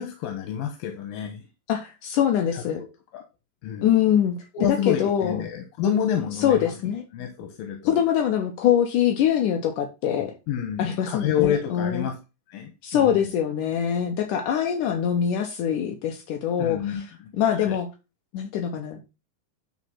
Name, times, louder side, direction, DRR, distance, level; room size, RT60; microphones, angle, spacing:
voice 1, 0.0-1.5 2.5-2.9 3.1-3.2 3.6-3.9 4.5-6.7 7.1-8.0 10.5-12.1 12.5-13.2 16.6-17.8, left 9 dB, 90° left, 3.0 m, -28 dB
voice 2, 1.7-2.8 3.8-4.4 4.6-5.4 6.4-7.1 7.9-10.3 10.8-12.1 12.8-17.0 17.3-17.9 18.3-19.0, left 9 dB, 70° left, 2.4 m, -23 dB
9.8 x 4.2 x 5.7 m
omnidirectional pair, 3.9 m